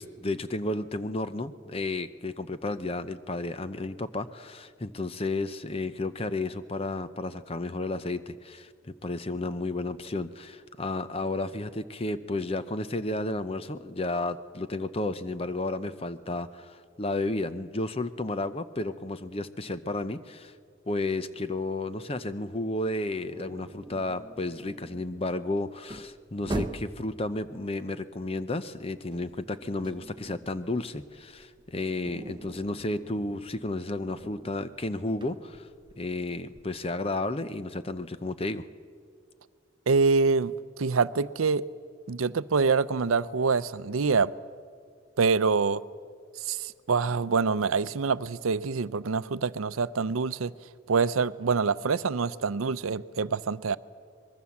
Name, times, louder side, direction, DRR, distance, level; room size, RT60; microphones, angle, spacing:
voice 1, 0.0-20.5 20.9-35.7 36.0-38.7, left 2 dB, 30° left, 0.7 m, -32 dB
sound 1, 23.3-27.1 28.5-30.6 30.9-36.7, right 1 dB, 20° right, 0.8 m, -42 dB
voice 2, 39.9-41.6 42.1-44.3 45.2-45.8 46.4-50.5 50.9-53.8, right 4 dB, 90° right, 0.6 m, -25 dB
23.5 x 21.5 x 7.2 m
head